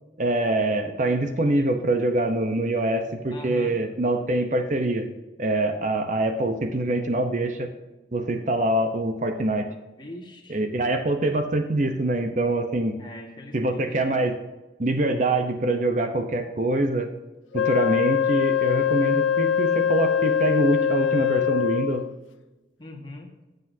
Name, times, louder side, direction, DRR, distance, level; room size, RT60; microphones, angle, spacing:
voice 1, 0.2-5.1 5.4-7.7 8.1-9.7 10.5-12.9 13.5-14.3 14.8-17.1 17.5-22.0, right 1 dB, 40° right, 6 dB, 0.8 m, -24 dB
voice 2, 3.3-3.8 10.0-10.6 13.0-14.0 22.8-23.4, left 1 dB, 25° left, 1 dB, 1.7 m, -40 dB
Wind instrument woodwind instrument, 17.5-22.2, left 8 dB, 85° left, 0.4 m, -23 dB
13.5 x 8.0 x 2.8 m, 1.1 s
head